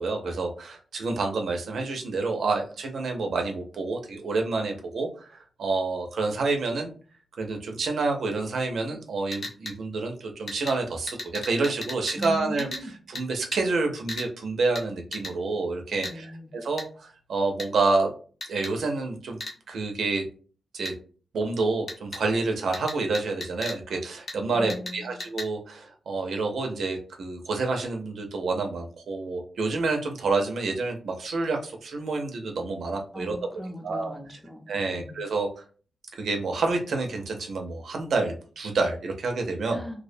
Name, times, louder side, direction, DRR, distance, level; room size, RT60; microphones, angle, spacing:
voice 1, 0.0-6.9 7.4-18.1 18.5-19.4 19.7-20.2 20.7-20.9 21.3-33.4 33.8-34.1 34.7-35.5 36.1-39.8, right 3 dB, 75° right, 4 dB, 0.5 m, -28 dB
sound 1, 9.3-9.8 10.5-10.8 11.1-12.3 12.6-12.8 13.2-13.3 13.5-13.6 14.1-14.3 14.8-14.9 15.1-15.3 16.0-16.2 16.8-16.9 17.6-17.7 18.4-18.7 19.4-19.6 20.9-21.0 21.9-22.2 22.7-23.8 24.3-24.4 24.7-24.9 25.2-25.5, left 2 dB, 55° left, 0.8 m, -35 dB
voice 2, 12.2-12.9 16.0-16.5 24.5-25.2 33.1-34.6 34.9-35.2 39.7-40.0, equal, ahead, 2 dB, 0.5 m, -38 dB
2.3 x 2.1 x 2.5 m, 0.40 s
wide cardioid pair, 110°, 0 cm